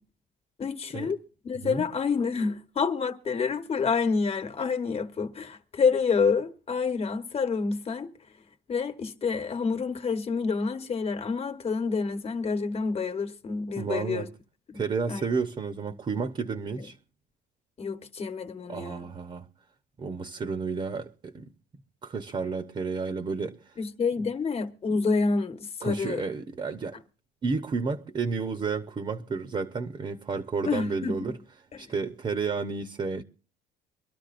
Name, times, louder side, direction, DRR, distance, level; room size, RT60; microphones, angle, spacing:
voice 1, 0.6-1.2 1.4-8.1 8.7-14.3 14.7-14.8 15.1-15.3 17.8-19.0 23.8-26.2 30.7-31.3, left 5 dB, 35° left, 1.3 m, -28 dB
voice 2, 13.8-14.3 14.7-17.0 18.7-19.5 20.0-21.5 22.0-23.7 24.2-24.3 25.8-27.0 27.4-31.4 31.8-33.2, right 4 dB, 30° right, 0.9 m, -31 dB
24.5 x 12.5 x 2.6 m
cardioid pair, 110°, 17 cm